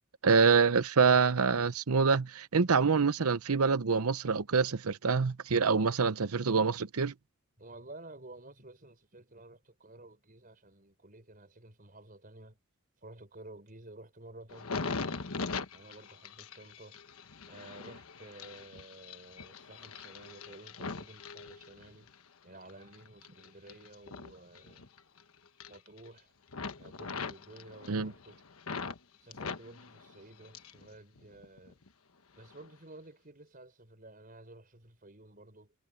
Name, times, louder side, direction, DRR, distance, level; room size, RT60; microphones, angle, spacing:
voice 1, 0.2-7.1 27.9-28.1, right 5 dB, 90° right, 0.8 m, -26 dB
voice 2, 7.6-12.6 13.0-15.3 15.7-17.0 17.5-22.1 22.4-25.0 25.7-26.3 26.8-28.4 29.2-31.8 32.4-35.7, right 2 dB, 40° right, 6.0 m, -52 dB
sound 1, 14.5-22.1 22.6-25.2 25.5-26.2 26.5-29.0 29.3-30.9 31.2-31.9 32.4-32.6, left 4 dB, 80° left, 1.3 m, -41 dB
head